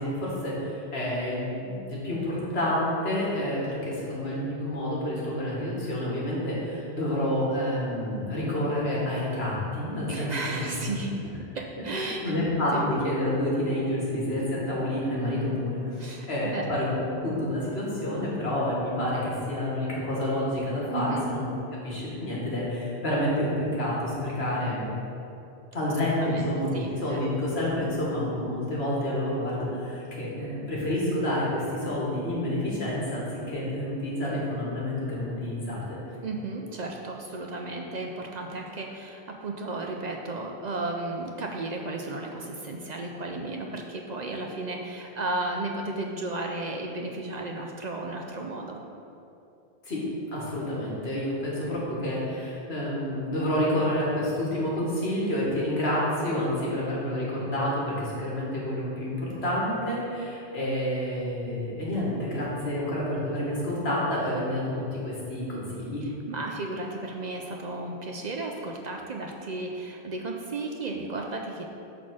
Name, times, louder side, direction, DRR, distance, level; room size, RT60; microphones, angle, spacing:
voice 1, 0.0-10.8 12.0-21.5 21.8-24.8 25.7-36.0 49.8-50.0 50.3-66.0, left 1 dB, 85° left, -6 dB, 1.9 m, -29 dB
voice 2, 10.1-11.1 11.5-12.9 16.0-16.7 20.9-21.3 25.8-25.9 26.2-26.5 26.7-27.3 36.2-48.8 66.0-71.7, right 2 dB, 55° right, 2 dB, 0.5 m, -34 dB
5.5 x 4.3 x 6.1 m, 2.8 s
omnidirectional pair, 1.0 m